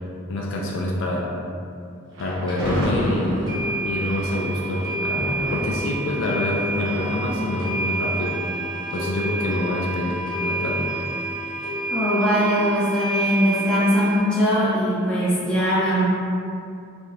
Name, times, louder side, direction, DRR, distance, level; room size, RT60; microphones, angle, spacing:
voice 1, 0.3-1.2 2.2-3.5 3.8-5.2 5.5-8.4 8.9-10.9, left 1 dB, 65° left, -2 dB, 0.4 m, -26 dB
Thunder, 2.1-9.3, equal, 70° right, 0.7 m, -31 dB
sound 1, 2.2-2.3 2.5-2.6 3.0-3.1 3.5-14.2, right 2 dB, 20° right, 0.5 m, -28 dB
voice 2, 11.9-16.0, equal, 5° left, -12 dB, 0.8 m, -21 dB
3.2 x 2.7 x 2.6 m, 2.5 s
head